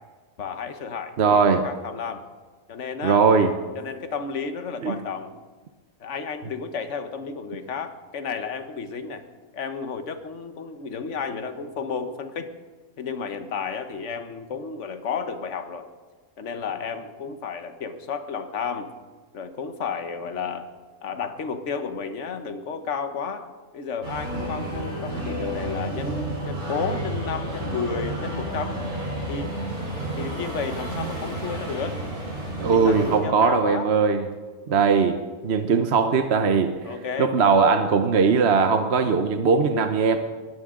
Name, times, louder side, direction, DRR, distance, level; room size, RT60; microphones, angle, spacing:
voice 1, 0.4-2.2 2.7-3.2 3.7-5.4 6.0-9.2 9.5-12.5 13.0-15.9 16.4-18.9 19.3-20.7 21.0-23.5 23.7-28.8 29.3-29.5 30.1-32.0 32.7-33.9 34.7-34.9 36.8-37.3, left 5 dB, 55° left, 9 dB, 1.4 m, -32 dB
voice 2, 1.2-1.6 3.0-3.5 4.8-5.0 32.6-34.2 34.7-40.2, right 5 dB, 50° right, 7 dB, 1.0 m, -20 dB
sound 1, 24.0-33.2, right 1 dB, 85° right, 5.3 m, -31 dB
22.0 x 16.5 x 3.8 m, 1.4 s
omnidirectional pair, 1.5 m